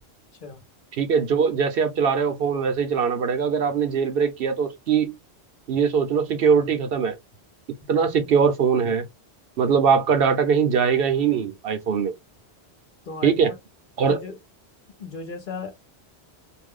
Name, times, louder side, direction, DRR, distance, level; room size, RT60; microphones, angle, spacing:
voice 1, 0.9-5.2 5.7-7.2 7.9-9.1 9.6-12.1 13.2-13.5 14.0-14.2, right 6 dB, 65° right, 0.8 m, -21 dB
voice 2, 13.1-13.5 14.1-14.4 15.0-15.7, left 4 dB, 55° left, 0.9 m, -36 dB
2.5 x 2.1 x 3.5 m
omnidirectional pair, 1.1 m